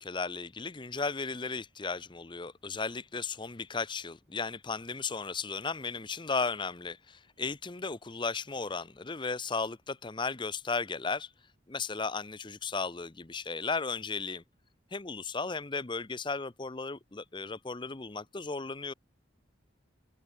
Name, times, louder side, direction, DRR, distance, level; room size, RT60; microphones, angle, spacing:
voice 1, 0.0-11.3 11.7-14.4 14.9-18.9, left 4 dB, 25° left, 0.7 m, -35 dB
head